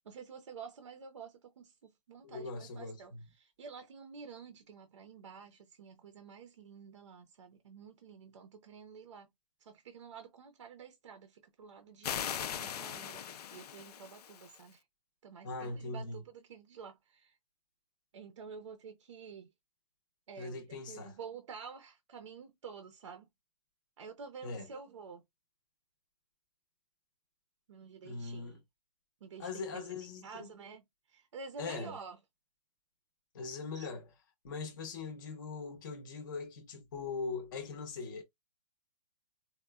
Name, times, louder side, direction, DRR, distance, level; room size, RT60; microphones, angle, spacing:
voice 1, 0.0-9.3 9.6-14.8 15.2-17.4 18.1-19.5 20.3-23.3 24.0-25.2 27.7-28.6 29.2-29.9 30.2-32.2 33.7-33.9, right 6 dB, 50° right, 0.6 m, -50 dB
voice 2, 2.2-3.3 15.4-16.2 20.4-21.2 24.4-24.7 28.0-28.6 29.4-30.5 31.6-32.0 33.3-34.1 34.4-38.2, left 4 dB, 30° left, 0.7 m, -41 dB
sound 1, 12.0-14.6, left 9 dB, 70° left, 0.4 m, -40 dB
4.2 x 2.1 x 2.2 m
hypercardioid pair, 175°, 21 cm